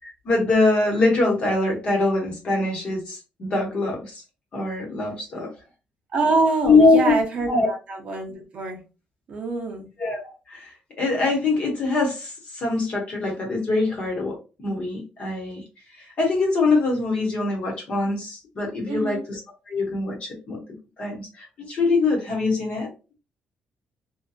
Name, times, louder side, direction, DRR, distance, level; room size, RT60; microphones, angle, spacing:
voice 1, 0.2-4.2 4.5-5.5 6.6-7.1 7.5-7.7 10.0-15.6 16.0-19.4 19.7-20.6 21.0-22.9, left 3 dB, 40° left, 0 dB, 0.9 m, -23 dB
voice 2, 6.1-8.8 9.3-9.9 18.9-19.2, right 3 dB, 40° right, 2 dB, 0.6 m, -25 dB
2.7 x 2.2 x 2.3 m, 0.31 s
cardioid pair, 175°, 3 cm